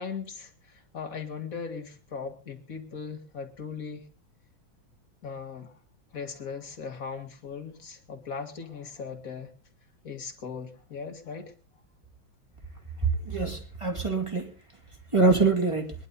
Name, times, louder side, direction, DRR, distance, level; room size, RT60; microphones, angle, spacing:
voice 1, 0.0-4.1 5.2-5.8 6.1-9.5 10.0-11.5, left 5 dB, 45° left, 5 dB, 2.3 m, -38 dB
voice 2, 13.3-14.5 15.1-15.9, right 3 dB, 15° right, 2 dB, 2.3 m, -24 dB
22.0 x 11.0 x 4.1 m, 0.35 s
omnidirectional pair, 2.2 m